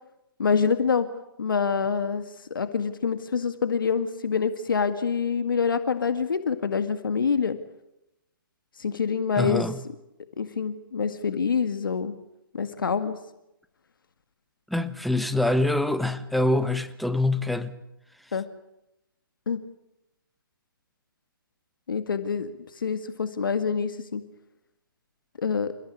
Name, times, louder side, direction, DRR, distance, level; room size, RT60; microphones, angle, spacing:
voice 1, 0.4-1.1 1.4-7.6 8.8-9.6 10.4-12.1 12.5-13.2 18.3-18.5 19.5-19.6 21.9-24.3 25.4-25.7, left 6 dB, 65° left, 2.0 m, -26 dB
voice 2, 9.4-9.8 14.7-17.8, left 2 dB, ahead, 1.3 m, -25 dB
29.5 x 16.0 x 9.7 m
figure-of-eight pair, 135°, 12 cm